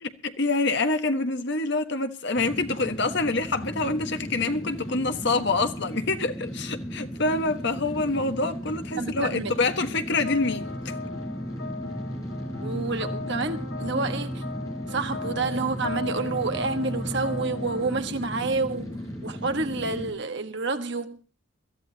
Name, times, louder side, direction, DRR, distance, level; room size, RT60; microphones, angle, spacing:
voice 1, 0.2-10.9, left 3 dB, 55° left, 1.4 m, -26 dB
sound 1, 2.3-20.1, equal, 15° left, 4.9 m, -36 dB
voice 2, 9.0-9.5 12.6-14.4 14.8-21.2, right 3 dB, 55° right, 1.5 m, -29 dB
sound 2, 10.2-18.0, left 2 dB, 80° left, 4.8 m, -35 dB
22.5 x 14.0 x 2.9 m
head